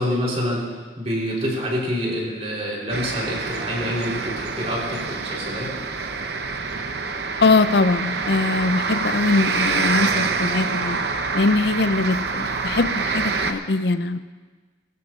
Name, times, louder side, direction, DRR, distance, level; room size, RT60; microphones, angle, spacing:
voice 1, 0.0-5.7, equal, 35° right, -3 dB, 3.6 m, -27 dB
sound 1, 2.9-13.5, right 4 dB, 60° right, 0.8 m, -26 dB
voice 2, 7.4-11.0 11.3-14.2, left 3 dB, 60° left, 13 dB, 0.5 m, -21 dB
21.5 x 13.5 x 2.5 m, 1.4 s
head